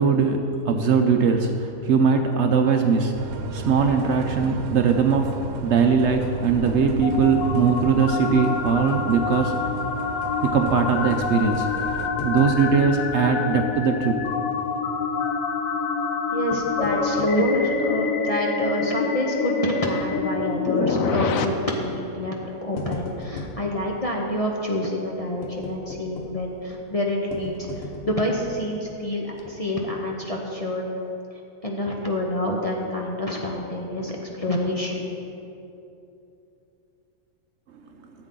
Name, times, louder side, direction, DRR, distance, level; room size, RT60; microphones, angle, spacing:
voice 1, 0.0-9.6 10.4-11.7 12.2-14.2, right 5 dB, 65° right, 4 dB, 0.8 m, -21 dB
sound 1, 3.1-12.1, right 5 dB, 85° right, 1.2 m, -35 dB
sound 2, 6.4-21.4, left 5 dB, 75° left, 1.0 m, -27 dB
sound 3, 12.2-13.2 13.4-13.5 14.3-14.9 16.3-17.5 18.1-18.2 18.8-19.1 19.4-19.5 20.6-20.9 21.8-22.0 22.4-23.7 25.4-26.6 27.3-28.3 28.8-28.9 29.3-29.4, left 2 dB, 50° left, 1.1 m, -37 dB
voice 2, 16.3-22.3 22.6-30.9 31.6-35.1, left 1 dB, 30° left, -1 dB, 0.7 m, -27 dB
13.0 x 8.0 x 3.8 m, 2.8 s
omnidirectional pair, 1.5 m